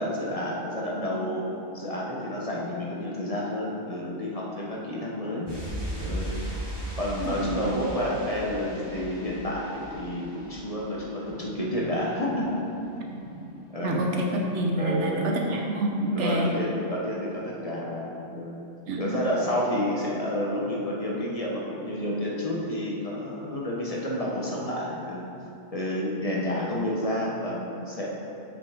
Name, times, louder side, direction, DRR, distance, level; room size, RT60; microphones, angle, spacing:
voice 1, 0.0-5.5 6.0-6.4 6.9-12.6 13.2-13.3 13.7-14.1 14.8-15.3 16.1-18.6 19.0-25.3 25.7-28.1, left 1 dB, 35° left, -4 dB, 0.8 m, -30 dB
sound 1, 5.5-12.0 12.2-12.4, right 1 dB, 20° right, 1.4 m, -37 dB
voice 2, 7.2-7.6 13.1-13.2 13.8-16.5 18.9-19.2, right 1 dB, 85° right, 0 dB, 1.2 m, -27 dB
7.1 x 5.9 x 3.4 m, 2.8 s
omnidirectional pair, 1.2 m